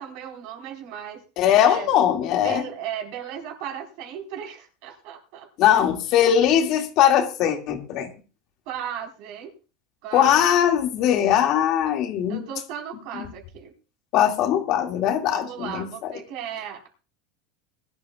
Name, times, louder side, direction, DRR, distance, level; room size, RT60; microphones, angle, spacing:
voice 1, 0.0-1.2 1.6-1.9 2.4-5.7 8.7-9.5 10.0-10.5 12.3-13.7 15.3-16.9, right 9 dB, 55° right, 4.6 m, -36 dB
voice 2, 1.4-2.6 5.6-8.1 10.1-12.4 14.1-16.1, left 10 dB, 45° left, 2.2 m, -20 dB
21.5 x 12.5 x 2.4 m
supercardioid pair, 145°, 0 cm